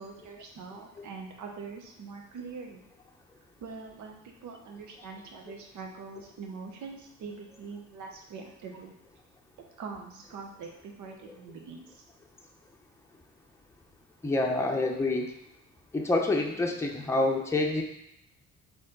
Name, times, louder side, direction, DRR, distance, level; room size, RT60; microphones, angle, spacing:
voice 1, 0.0-2.8 3.6-8.9 9.8-12.0, right 5 dB, 75° right, 2 dB, 0.9 m, -43 dB
voice 2, 14.2-15.3 15.9-17.8, left 2 dB, 10° left, 1 dB, 0.7 m, -27 dB
4.2 x 3.0 x 3.8 m, 0.82 s
cardioid pair, 90°, 30 cm